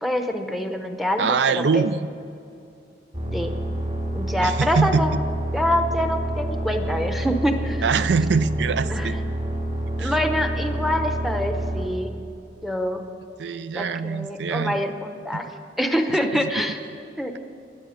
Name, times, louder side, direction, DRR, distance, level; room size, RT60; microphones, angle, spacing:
voice 1, 0.0-1.4 1.7-1.8 3.3-3.5 4.1-5.2 5.5-7.8 8.9-9.2 10.0-12.1 12.6-13.0 13.7-15.5 15.8-16.8 17.2-17.4, equal, ahead, 5 dB, 0.8 m, -25 dB
voice 2, 1.2-2.1 4.4-5.2 7.8-9.2 10.0-10.1 13.4-14.8 15.3-15.5 16.3-16.6, right 5 dB, 70° right, 14 dB, 0.4 m, -23 dB
sound 1, 3.1-11.9, right 1 dB, 40° right, 3.3 m, -28 dB
20.5 x 7.6 x 5.1 m, 2.6 s
head